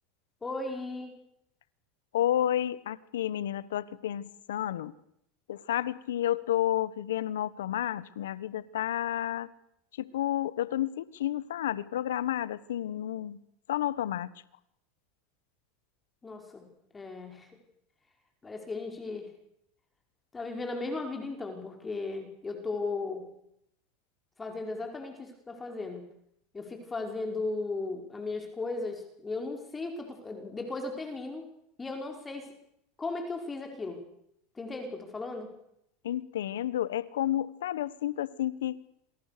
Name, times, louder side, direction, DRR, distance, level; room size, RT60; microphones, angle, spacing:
voice 1, 0.4-1.1 16.2-16.7 16.9-17.5 18.4-19.3 20.3-23.3 24.4-26.0 26.5-31.5 31.8-32.5 33.0-34.0 34.6-35.5, left 3 dB, 20° left, 5.3 m, -36 dB
voice 2, 2.1-4.9 5.5-9.5 10.0-13.4 13.7-14.3 36.0-38.8, left 12 dB, 85° left, 1.3 m, -31 dB
27.5 x 25.0 x 6.9 m
hypercardioid pair, 105°, 0 cm